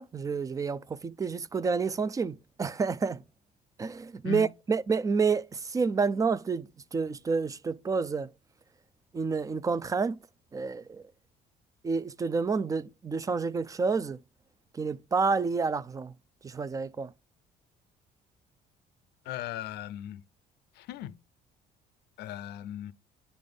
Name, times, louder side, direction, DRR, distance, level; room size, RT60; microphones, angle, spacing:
voice 1, 0.0-3.2 3.8-8.3 9.1-10.2 10.5-11.0 11.8-14.2 14.7-16.1 16.4-17.1, right 5 dB, 20° right, 0.4 m, -29 dB
voice 2, 19.2-20.2 20.7-21.2 22.2-22.9, left 13 dB, 75° left, 0.5 m, -38 dB
9.9 x 3.4 x 3.8 m
cardioid pair, 110°, 17 cm